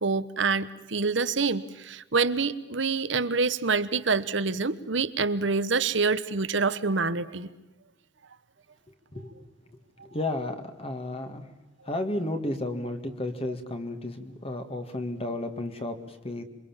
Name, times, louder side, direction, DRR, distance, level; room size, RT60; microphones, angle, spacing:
voice 1, 0.0-7.5, right 4 dB, 70° right, 14 dB, 1.1 m, -26 dB
voice 2, 10.1-11.4 11.9-16.4, left 1 dB, 30° left, 7 dB, 2.0 m, -32 dB
27.5 x 24.0 x 7.4 m, 1.0 s
head